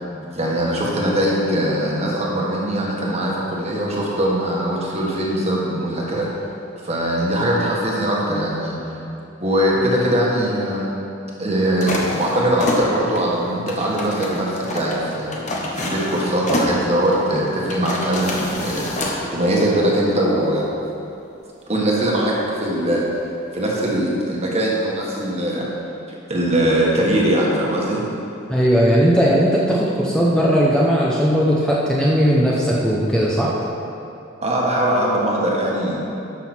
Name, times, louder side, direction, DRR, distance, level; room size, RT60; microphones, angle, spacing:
voice 1, 0.3-6.3 6.8-8.8 9.4-10.9 11.4-15.4 15.7-18.9 19.3-20.7 21.7-23.0 23.5-25.7 26.3-28.0 34.4-36.0, right 1 dB, 35° right, -3 dB, 1.6 m, -21 dB
sound 1, 11.8-19.2, left 1 dB, 40° left, 1.2 m, -27 dB
voice 2, 28.5-33.5, equal, 5° left, -5 dB, 0.8 m, -17 dB
12.0 x 6.3 x 4.4 m, 2.8 s
head